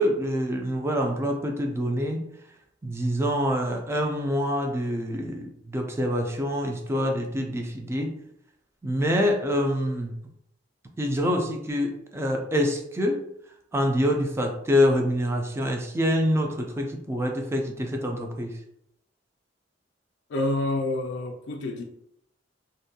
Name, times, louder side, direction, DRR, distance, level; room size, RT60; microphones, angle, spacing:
voice 1, 0.0-2.3 2.8-8.2 8.8-10.1 11.0-13.2 13.7-18.5, equal, 15° right, 0.3 m, -26 dB
voice 2, 20.3-21.8, left 2 dB, 75° left, 0.3 m, -28 dB
2.5 x 2.2 x 2.7 m
head